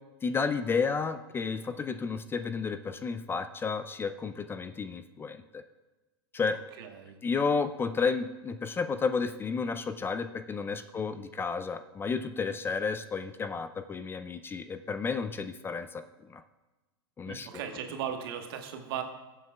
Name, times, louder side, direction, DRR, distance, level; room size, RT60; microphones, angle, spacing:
voice 1, 0.2-5.6 6.3-6.6 7.2-16.0 16.3-16.4 17.2-17.5, left 5 dB, 15° left, 10 dB, 0.4 m, -32 dB
voice 2, 6.8-7.2 17.3-19.0, right 9 dB, 65° right, 5 dB, 1.3 m, -37 dB
17.5 x 7.7 x 2.3 m, 1.2 s
hypercardioid pair, 110°, 13 cm